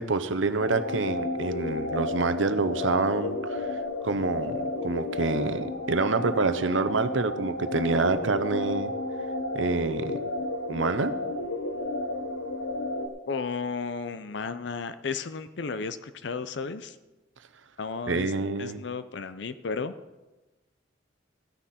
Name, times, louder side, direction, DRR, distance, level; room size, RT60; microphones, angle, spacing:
voice 1, 0.0-3.8 4.0-8.9 9.5-10.1 10.7-11.1 18.1-18.8, right 3 dB, 85° right, 10 dB, 0.8 m, -27 dB
sound 1, 0.6-13.1, left 2 dB, 85° left, 1.1 m, -32 dB
voice 2, 13.3-17.0 17.8-19.9, left 4 dB, 65° left, 12 dB, 0.5 m, -33 dB
15.0 x 9.9 x 4.3 m, 1.1 s
head